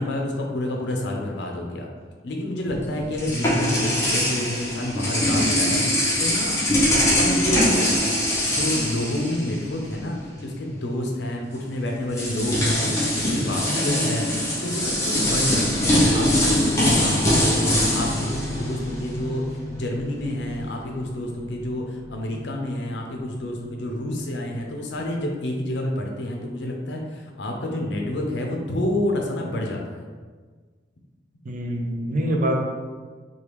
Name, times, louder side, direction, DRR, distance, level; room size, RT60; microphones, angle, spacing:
voice 1, 0.0-1.9 2.2-8.0 8.4-10.2 10.4-30.1, left 1 dB, 65° left, 1 dB, 0.5 m, -29 dB
sound 1, 2.7-9.9 10.2-10.4 11.5-11.6 12.1-19.3, left 1 dB, 15° left, 0.7 m, -22 dB
voice 2, 3.3-4.0 31.5-32.6, equal, 45° right, 1 dB, 0.4 m, -26 dB
sound 2, 15.2-26.6, left 2 dB, 85° right, 0.9 m, -37 dB
3.3 x 2.3 x 3.0 m, 1.5 s
head